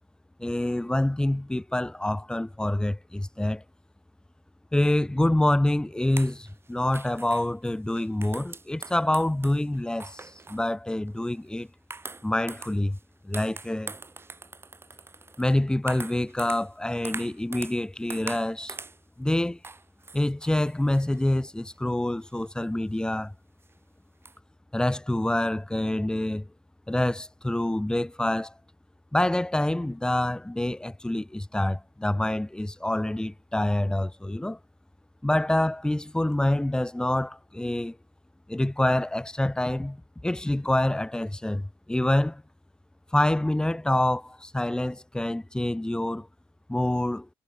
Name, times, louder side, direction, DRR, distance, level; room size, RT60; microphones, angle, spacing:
voice 1, 0.4-3.6 4.7-11.7 12.2-13.0 13.2-13.9 15.4-18.8 19.2-19.6 20.1-23.3 24.7-26.5 26.9-28.5 29.1-34.6 35.2-38.0 38.5-42.4 43.1-46.3 46.7-47.3, left 1 dB, 5° left, 2.7 m, -26 dB
sound 1, 6.1-10.7 11.1-11.4 11.9-13.0 13.3-17.8 18.1-19.0 19.6-21.3 22.4-22.5 23.1-23.2 23.6-23.7 24.2-24.4, right 3 dB, 20° right, 6.3 m, -42 dB
cardioid pair, 105°, 11 cm